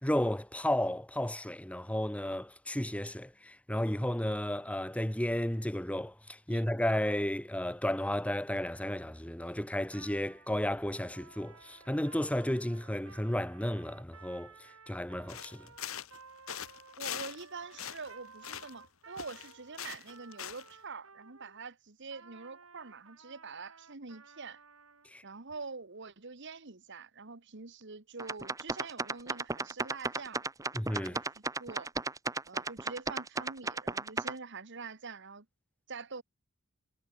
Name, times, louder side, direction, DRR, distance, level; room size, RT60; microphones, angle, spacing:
voice 1, 0.0-14.5 14.9-15.7 25.1-25.2 30.7-31.2, left 1 dB, 5° left, 1.4 m, -33 dB
Trumpet, 9.9-21.6 22.1-25.1, right 4 dB, 80° right, 5.0 m, -56 dB
sound 1, 15.3-16.2 16.5-17.5 17.7-18.9 19.2-20.7, left 9 dB, 80° left, 1.9 m, -42 dB
voice 2, 17.0-24.6 25.2-30.4 30.9-31.9 32.5-35.4 35.9-36.2, right 4 dB, 60° right, 1.6 m, -45 dB
sound 2, 28.2-34.3, right 3 dB, 15° right, 0.8 m, -34 dB
head